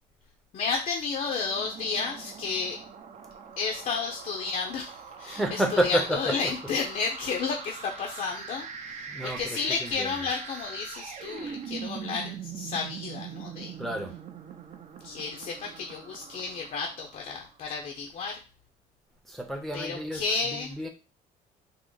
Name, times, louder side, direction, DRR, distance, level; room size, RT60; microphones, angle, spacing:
voice 1, 0.5-2.8 3.6-13.8 15.0-18.4 19.7-20.7, left 5 dB, 50° left, 0.6 m, -32 dB
sound 1, 1.4-17.7, right 7 dB, 45° right, 0.6 m, -43 dB
voice 2, 5.2-6.4 6.6-6.7 9.1-10.3 13.8-14.2 19.2-20.9, right 1 dB, ahead, 0.6 m, -30 dB
3.6 x 2.0 x 3.8 m
cardioid pair, 110°, 17 cm